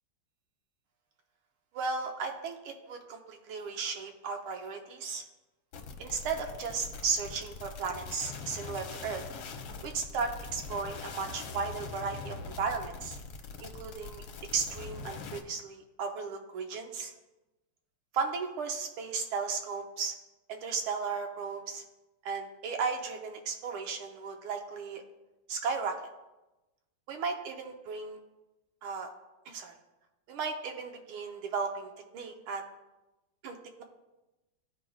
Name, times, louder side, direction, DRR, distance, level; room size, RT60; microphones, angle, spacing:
voice 1, 1.7-5.2 6.0-9.2 9.8-13.2 13.6-14.2 14.5-17.1 18.1-20.1 20.5-21.8 22.2-25.0 25.5-26.0 27.1-28.2 28.8-29.1 29.5-29.7 30.3-32.6 33.4-33.8, right 5 dB, 85° right, 4 dB, 1.7 m, -35 dB
sound 1, 5.7-15.4, left 5 dB, 75° left, 1.5 m, -43 dB
14.0 x 5.0 x 2.3 m, 1.0 s
omnidirectional pair, 2.3 m